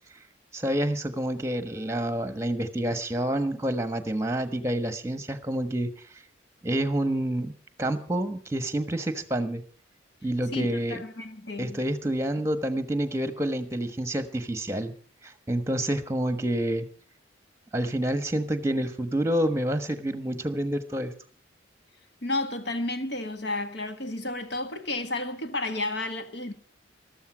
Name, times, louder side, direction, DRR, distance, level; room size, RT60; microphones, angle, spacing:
voice 1, 0.5-5.9 6.6-7.5 7.8-9.6 10.2-11.0 11.6-14.9 15.2-16.8 17.7-21.1, right 1 dB, 15° right, 1.2 m, -28 dB
voice 2, 10.5-11.9 22.2-26.5, left 2 dB, 60° left, 1.7 m, -32 dB
14.0 x 13.5 x 6.1 m
head